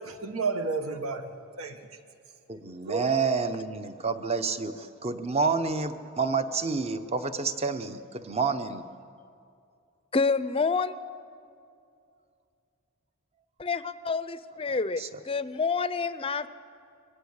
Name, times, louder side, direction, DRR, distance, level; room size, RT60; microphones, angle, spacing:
voice 1, 0.0-1.8 2.9-3.1, right 4 dB, 80° right, 7 dB, 1.5 m, -32 dB
voice 2, 2.5-8.9 15.0-15.2, right 4 dB, 30° right, 10 dB, 0.8 m, -29 dB
voice 3, 10.1-10.9 13.6-16.5, left 4 dB, 25° left, 14 dB, 0.6 m, -28 dB
23.0 x 17.0 x 8.1 m, 2.5 s
head